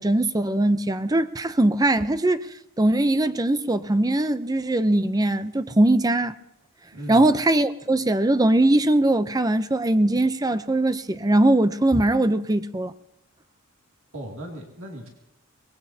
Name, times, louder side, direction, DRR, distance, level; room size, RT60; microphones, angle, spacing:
voice 1, 0.0-2.4 2.8-6.3 7.1-12.9, right 1 dB, 15° right, 12 dB, 0.6 m, -21 dB
voice 2, 6.9-7.3 14.1-15.1, right 1 dB, 65° right, -1 dB, 2.6 m, -36 dB
24.0 x 20.0 x 2.8 m, 0.89 s
head